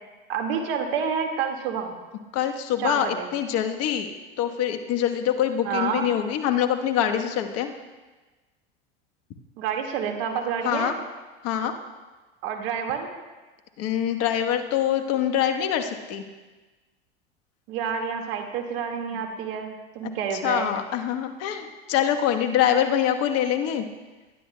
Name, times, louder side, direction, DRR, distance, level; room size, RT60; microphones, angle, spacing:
voice 1, 0.3-1.9 2.8-3.3 5.6-6.1 9.6-10.9 12.4-13.1 17.7-20.8, right 6 dB, 65° right, 3 dB, 1.9 m, -28 dB
voice 2, 2.3-4.1 4.4-7.7 10.6-10.9 11.4-11.7 13.8-16.2 19.1-19.2 20.4-23.8, left 10 dB, 50° left, 6 dB, 1.2 m, -24 dB
20.5 x 11.5 x 2.2 m, 1.2 s
hypercardioid pair, 90°, 31 cm